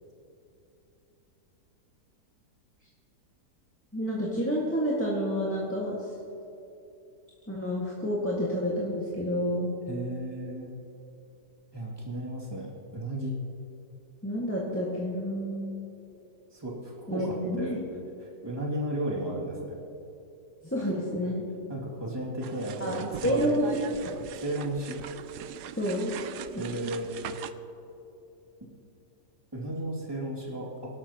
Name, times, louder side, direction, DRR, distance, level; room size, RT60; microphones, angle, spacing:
voice 1, 3.9-6.1 7.5-9.7 14.2-15.8 17.1-17.8 20.6-21.4 22.8-23.7 24.1-24.2 25.8-26.1 26.5-26.9, equal, 10° left, -5 dB, 1.7 m, -29 dB
voice 2, 9.9-10.7 11.7-13.3 16.5-17.7 18.2-19.8 21.7-23.5 24.3-25.0 26.6-27.4 29.5-30.9, right 1 dB, 15° right, -4 dB, 2.4 m, -34 dB
sound 1, 22.4-27.5, right 10 dB, 85° right, 1.2 m, -41 dB
24.0 x 12.5 x 3.0 m, 2.9 s
omnidirectional pair, 1.7 m